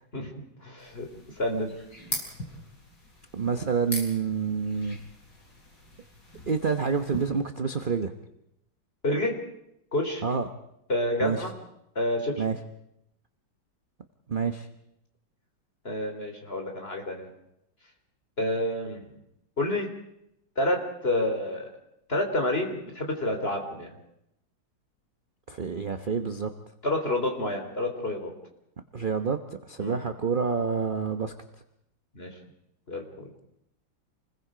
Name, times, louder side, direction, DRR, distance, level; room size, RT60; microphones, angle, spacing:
voice 1, 0.1-1.1 1.4-1.7 9.0-9.3 9.9-10.2 10.9-11.5 12.0-12.3 15.8-17.3 18.4-19.0 19.6-19.9 20.6-21.7 22.1-23.9 26.8-28.3 29.8-30.0 32.2-32.4 32.9-33.3, left 1 dB, 30° left, 3 dB, 3.8 m, -29 dB
sound 1, 0.8-7.3, left 1 dB, 65° left, 5.0 m, -41 dB
voice 2, 3.3-5.0 6.5-8.1 10.2-10.5 11.2-11.4 12.4-12.6 14.3-14.7 25.5-26.5 28.9-31.3, right 5 dB, 35° right, 7 dB, 1.0 m, -28 dB
28.5 x 21.0 x 5.1 m, 0.81 s
omnidirectional pair, 2.0 m